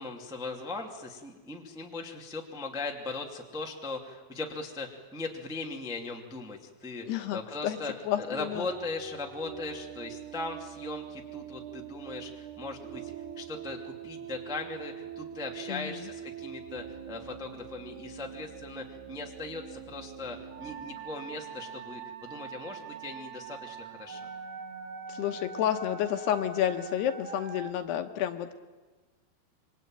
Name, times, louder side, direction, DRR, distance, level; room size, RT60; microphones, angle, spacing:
voice 1, 0.0-7.9 8.2-24.3, left 3 dB, 5° right, 1 dB, 0.6 m, -39 dB
voice 2, 7.1-7.8 8.1-8.7 15.7-16.1 25.1-28.5, left 11 dB, 75° left, 7 dB, 2.8 m, -30 dB
sound 1, 8.5-27.7, right 7 dB, 65° right, 3.3 m, -43 dB
27.0 x 23.5 x 9.0 m, 1.3 s
omnidirectional pair, 5.3 m